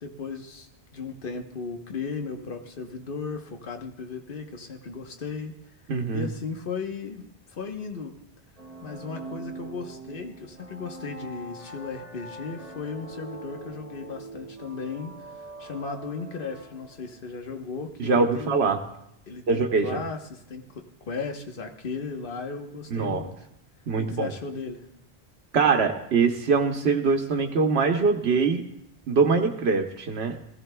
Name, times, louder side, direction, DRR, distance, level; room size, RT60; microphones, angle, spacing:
voice 1, 0.0-5.5 6.1-8.1 8.8-18.6 19.3-23.4 24.0-24.9, left 4 dB, 60° left, 4 dB, 1.2 m, -36 dB
voice 2, 5.9-6.3 18.0-18.8 19.5-20.0 22.9-23.2 23.9-24.3 25.5-28.6 29.1-30.4, right 4 dB, 85° right, 3 dB, 1.2 m, -23 dB
sound 1, 8.6-17.2, right 2 dB, 40° right, 1.6 m, -42 dB
19.0 x 14.5 x 2.2 m, 0.79 s
omnidirectional pair, 1.1 m